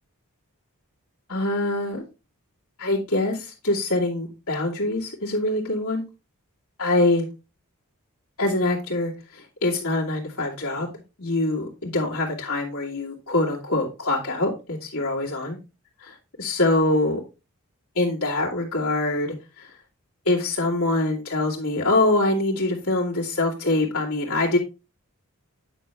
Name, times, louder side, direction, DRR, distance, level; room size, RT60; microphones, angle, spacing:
voice 1, 1.3-2.0 2.8-6.0 6.8-7.3 8.4-10.9 11.2-15.6 16.4-17.2 18.0-19.7 20.3-24.6, left 2 dB, 75° left, -5 dB, 2.1 m, -24 dB
9.0 x 5.5 x 3.4 m, 0.29 s
head